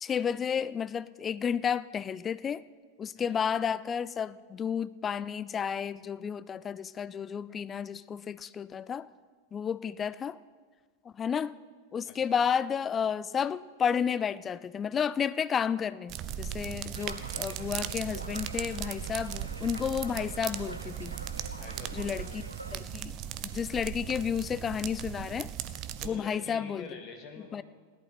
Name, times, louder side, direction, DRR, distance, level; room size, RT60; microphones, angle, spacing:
voice 1, 0.0-2.6 3.0-9.1 9.5-10.4 11.2-11.5 11.9-21.1 21.9-22.4 22.7-23.2 23.5-25.5 26.0-26.9 27.5-27.6, left 7 dB, 20° left, 0.3 m, -31 dB
voice 2, 12.1-12.4 21.5-22.4 26.0-27.6, left 4 dB, 40° left, 2.1 m, -47 dB
sound 1, 16.1-26.1, right 10 dB, 35° right, 0.6 m, -38 dB
sound 2, 16.9-22.8, right 1 dB, 85° right, 0.8 m, -46 dB
17.0 x 11.0 x 4.2 m
figure-of-eight pair, 90°, 0 cm